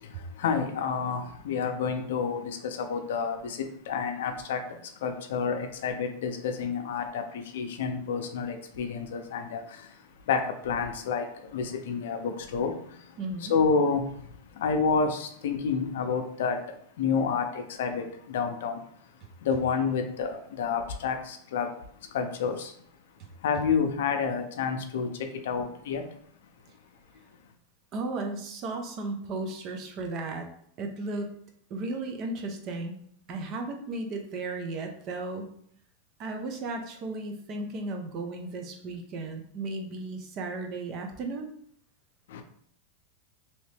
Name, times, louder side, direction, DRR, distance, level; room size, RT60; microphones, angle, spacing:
voice 1, 0.0-18.8 19.4-21.7 22.1-22.7 23.4-26.0 42.3-42.4, left 5 dB, 75° left, 0.5 m, -29 dB
voice 2, 13.2-13.5 27.9-30.5 30.8-31.3 31.7-32.9 33.3-35.5 36.2-41.5, right 2 dB, 40° right, 0.6 m, -35 dB
2.9 x 2.8 x 3.3 m
supercardioid pair, 125°, 0 cm